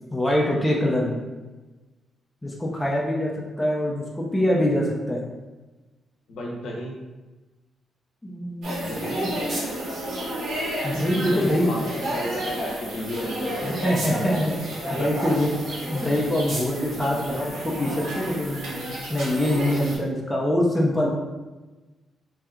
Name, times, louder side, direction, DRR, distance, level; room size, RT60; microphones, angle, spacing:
voice 1, 0.1-1.2 2.4-3.3 3.6-5.2 8.2-9.3 10.8-11.7 13.6-14.5 14.9-15.5 15.9-21.1, left 1 dB, 10° left, -3 dB, 0.4 m, -24 dB
voice 2, 6.3-7.0 8.8-9.2 11.3-13.7 14.8-14.9 17.3-17.4, left 1 dB, 75° left, -1 dB, 0.7 m, -33 dB
sound 1, 8.6-20.0, right 1 dB, 85° right, 1.4 m, -31 dB
Spray Sound, 8.7-18.1, right 1 dB, 45° right, 0.9 m, -42 dB
2.8 x 2.2 x 3.5 m, 1.2 s
cardioid pair, 140°, 0 cm